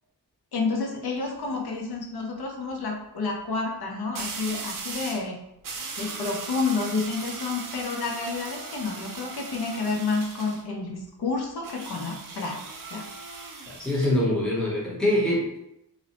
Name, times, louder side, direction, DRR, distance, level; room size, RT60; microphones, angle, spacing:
voice 1, 0.5-5.4 6.0-12.6 12.9-13.0, left 4 dB, 70° left, 0 dB, 0.6 m, -30 dB
sound 1, 1.0-1.3 4.1-5.3 5.6-10.6 11.6-14.2, right 4 dB, 55° right, 0.5 m, -38 dB
voice 2, 13.7-15.6, left 1 dB, ahead, -5 dB, 0.7 m, -24 dB
2.6 x 2.0 x 2.8 m, 0.81 s
wide cardioid pair, 85°, 40 cm